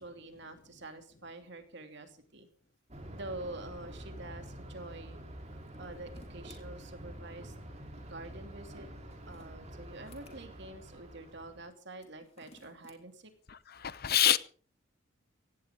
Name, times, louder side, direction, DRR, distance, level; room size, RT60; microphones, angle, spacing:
voice 1, 0.0-2.5 3.1-5.2 5.8-7.5 8.1-8.9 9.3-13.3, right 2 dB, 55° right, 2.9 m, -46 dB
Thunder, 2.9-11.7, right 1 dB, 30° right, 3.5 m, -47 dB
sound 1, 5.6-6.6 8.9-10.4 11.9-13.0, left 2 dB, 30° left, 3.2 m, -59 dB
voice 2, 13.5-14.4, left 11 dB, 50° left, 0.8 m, -27 dB
18.0 x 16.0 x 3.8 m
head